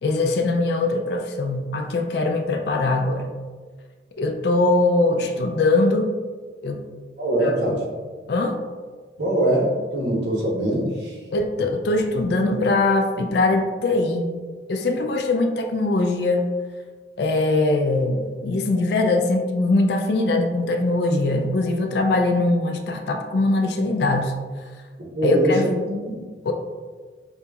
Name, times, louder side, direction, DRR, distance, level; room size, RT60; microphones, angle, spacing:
voice 1, 0.0-3.3 4.2-6.1 6.6-6.8 7.4-7.8 8.3-8.6 11.3-14.3 14.7-16.5 17.2-24.4 25.2-25.7 26.4-26.5, left 2 dB, 60° left, 4 dB, 0.3 m, -21 dB
voice 2, 7.2-7.8 9.2-11.2 25.0-26.3, right 1 dB, 65° right, -2 dB, 0.9 m, -23 dB
4.9 x 2.8 x 2.3 m, 1.5 s
head